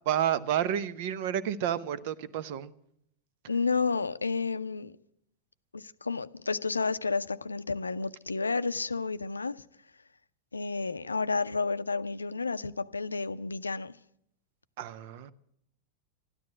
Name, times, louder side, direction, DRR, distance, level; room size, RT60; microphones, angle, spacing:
voice 1, 0.1-2.7 14.8-15.3, right 10 dB, 50° right, 0.8 m, -30 dB
voice 2, 3.5-5.0 5.7-9.6 10.5-13.9, left 4 dB, 80° left, 0.5 m, -31 dB
13.0 x 12.5 x 8.8 m
figure-of-eight pair, 90°, 0 cm